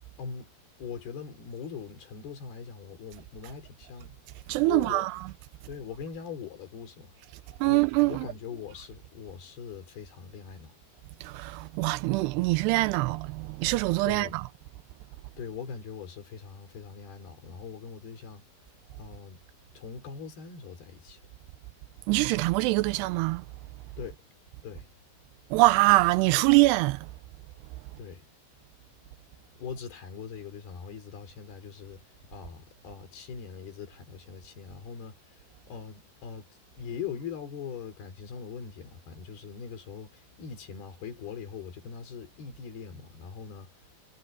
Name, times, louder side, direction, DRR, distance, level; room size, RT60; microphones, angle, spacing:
voice 1, 0.2-0.5 0.8-5.1 5.7-7.2 7.6-7.8 8.1-10.8 14.1-14.4 15.4-19.4 19.7-21.2 24.0-24.2 24.6-24.9 28.0-28.3 29.6-36.5 36.8-43.9, left 6 dB, 65° left, 5.5 m, -41 dB
voice 2, 4.5-5.3 7.6-8.3 11.2-14.5 22.1-23.5 25.5-27.1, right 21 dB, 85° right, 2.6 m, -24 dB
omnidirectional pair, 4.8 m